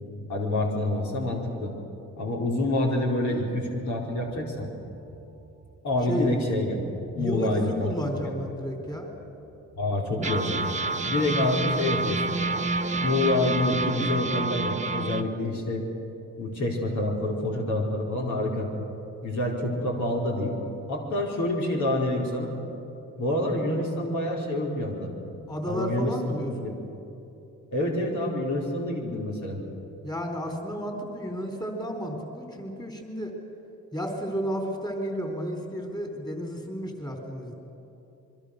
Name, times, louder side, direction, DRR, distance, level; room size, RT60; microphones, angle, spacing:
voice 1, 0.3-1.7 2.2-4.7 5.8-6.8 7.1-8.3 9.7-10.7 11.0-12.4 13.0-15.8 16.4-18.7 19.2-20.6 20.9-22.5 23.2-25.1 25.6-26.7 27.7-29.6, left 1 dB, 70° left, -1 dB, 4.3 m, -27 dB
sound 1, 4.2-7.3 7.8-7.9 8.1-8.3 8.9-9.0 10.2-15.2, right 3 dB, 25° right, 1.3 m, -29 dB
voice 2, 6.0-6.3 7.1-9.1 25.5-26.7 30.0-33.3 33.9-37.5, equal, 15° left, 3 dB, 4.0 m, -32 dB
26.0 x 23.0 x 6.7 m, 2.9 s
cardioid pair, 90°, 30 cm